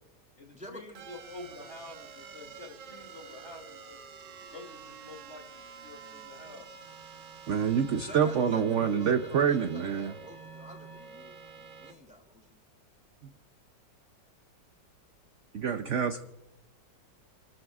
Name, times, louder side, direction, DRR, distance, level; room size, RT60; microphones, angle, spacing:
voice 1, 0.3-4.0 4.5-6.7, left 2 dB, 40° left, 1 dB, 2.9 m, -48 dB
sound 1, 0.9-11.9, right 6 dB, 90° right, 1.8 m, -48 dB
voice 2, 7.5-10.1 15.5-16.2, right 7 dB, 60° right, 7 dB, 0.8 m, -26 dB
voice 3, 8.0-12.5, equal, 5° right, 1 dB, 2.9 m, -47 dB
29.5 x 13.0 x 2.4 m, 0.97 s
omnidirectional pair, 2.0 m